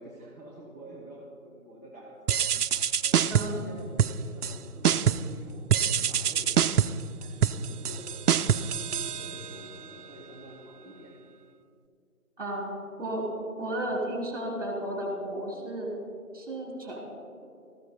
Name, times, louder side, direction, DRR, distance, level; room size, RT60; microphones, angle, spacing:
voice 1, 0.0-2.4 3.0-11.1, right 1 dB, 25° left, -7 dB, 1.4 m, -48 dB
sound 1, 2.3-3.6 4.0-4.6 4.8-5.4 5.7-9.7, right 8 dB, 90° right, 0.5 m, -25 dB
voice 2, 13.6-15.9 16.3-17.0, right 1 dB, 25° right, -2 dB, 3.2 m, -33 dB
19.0 x 14.5 x 2.3 m, 2.5 s
figure-of-eight pair, 180°, 44 cm